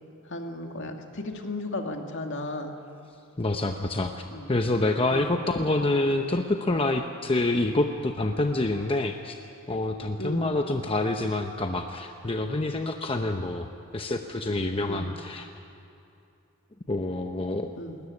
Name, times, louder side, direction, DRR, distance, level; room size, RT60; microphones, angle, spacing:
voice 1, 0.3-2.7 4.3-4.5 5.1-5.3 7.6-7.7 10.2-10.5 14.9-15.1 17.8-18.0, left 2 dB, 60° left, 4 dB, 2.2 m, -35 dB
voice 2, 3.4-9.4 9.7-13.7 13.9-15.5 16.9-17.7, left 2 dB, 25° left, 5 dB, 0.8 m, -27 dB
20.5 x 20.0 x 9.6 m, 2.7 s
head